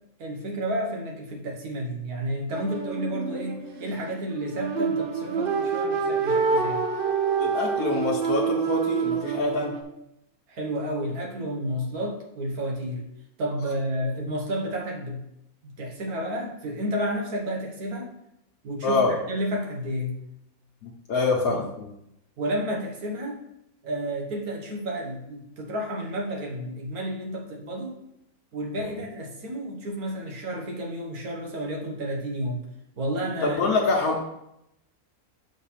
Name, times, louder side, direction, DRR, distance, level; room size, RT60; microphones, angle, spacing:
voice 1, 0.2-6.8 10.5-13.1 13.4-15.2 15.6-18.1 18.6-20.2 21.5-21.6 22.4-23.4 23.8-28.0 28.5-32.7 33.0-33.6, equal, 85° right, 0 dB, 1.7 m, -31 dB
sound 1, 2.5-9.8, right 5 dB, 50° right, 0.7 m, -27 dB
voice 2, 7.4-9.7 18.8-19.1 20.8-21.9 28.8-28.9 33.4-34.2, left 3 dB, 75° left, -3 dB, 1.4 m, -25 dB
6.1 x 3.9 x 5.7 m, 0.82 s
omnidirectional pair, 1.5 m